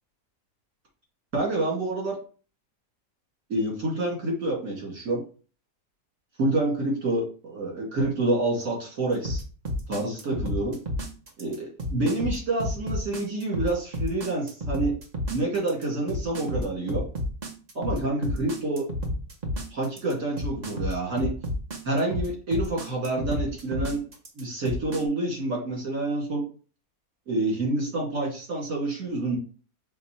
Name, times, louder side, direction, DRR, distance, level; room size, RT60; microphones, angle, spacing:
voice 1, 1.3-2.2 3.5-5.2 6.4-9.4 9.9-10.8 11.4-14.9 15.3-17.0 17.7-18.8 19.7-21.3 21.8-24.0 24.4-26.4 27.3-29.4, right 2 dB, 65° right, -2 dB, 2.4 m, -28 dB
sound 1, 9.2-25.0, left 1 dB, 35° right, 0.7 m, -30 dB
5.2 x 2.2 x 4.2 m, 0.38 s
omnidirectional pair, 1.5 m